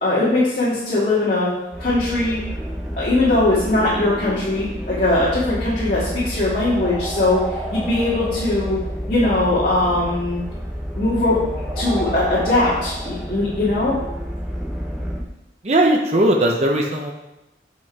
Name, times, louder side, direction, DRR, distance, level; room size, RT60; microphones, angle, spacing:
voice 1, 0.0-1.5 1.8-2.4 3.0-7.4 7.7-8.8 9.1-10.4 11.0-11.4 11.7-13.9, left 2 dB, 45° left, -9 dB, 2.0 m, -20 dB
sound 1, 1.7-15.2, equal, ahead, 0.8 m, -29 dB
voice 2, 15.6-17.1, right 1 dB, 35° right, 0 dB, 0.7 m, -18 dB
7.8 x 5.2 x 4.7 m, 0.94 s
head